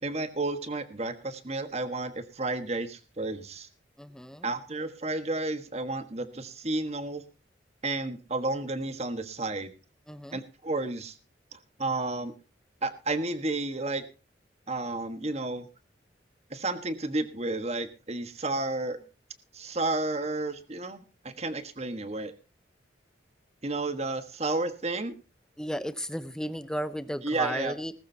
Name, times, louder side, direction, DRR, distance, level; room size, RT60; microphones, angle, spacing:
voice 1, 0.0-3.7 4.4-7.2 7.8-9.7 10.3-11.2 11.5-12.3 12.8-14.0 14.7-15.6 16.5-19.0 19.5-22.3 23.6-25.1 27.2-27.7, right 2 dB, 35° right, 10 dB, 1.4 m, -32 dB
voice 2, 4.0-4.5 10.1-10.4 25.6-27.9, equal, 5° left, 12 dB, 0.8 m, -34 dB
19.5 x 13.5 x 2.8 m, 0.31 s
head